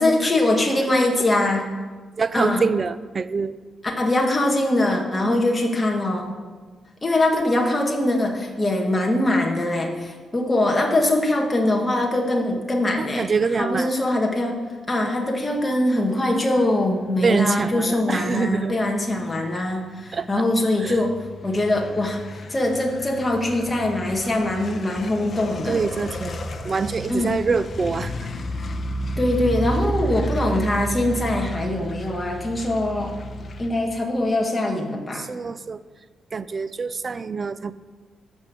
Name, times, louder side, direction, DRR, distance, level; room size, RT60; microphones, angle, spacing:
voice 1, 0.0-1.6 2.3-2.6 3.8-6.3 7.0-13.3 13.6-14.6 14.9-21.1 21.4-22.2 22.5-25.8 27.1-27.3 29.2-33.1 33.6-35.3, left 1 dB, 15° left, 1 dB, 1.5 m, -22 dB
voice 2, 2.2-3.6 5.2-5.4 13.0-13.9 17.2-18.8 20.1-20.4 20.8-21.0 25.7-28.3 35.1-35.8 36.3-37.7, right 5 dB, 30° right, 15 dB, 0.4 m, -25 dB
sound 1, 17.2-33.7, right 1 dB, 35° left, 1.0 m, -32 dB
13.0 x 5.3 x 7.4 m, 1.4 s
cardioid pair, 160°, 0 cm